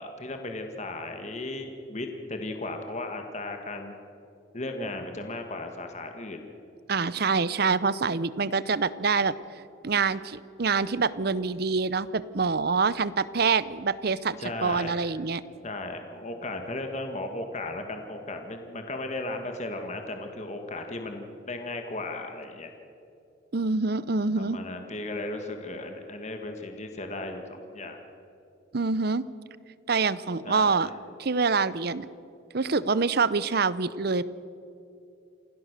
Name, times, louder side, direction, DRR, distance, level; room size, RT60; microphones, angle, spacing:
voice 1, 0.0-4.0 4.5-6.5 14.4-15.1 15.6-22.7 24.4-28.0 30.4-30.9, left 2 dB, 35° left, 5 dB, 1.8 m, -36 dB
voice 2, 6.9-9.3 9.8-15.4 23.5-24.6 28.7-29.2 29.9-30.9 31.2-32.1 32.5-34.2, right 4 dB, 50° right, 17 dB, 0.7 m, -26 dB
28.0 x 16.5 x 6.7 m, 2.7 s
head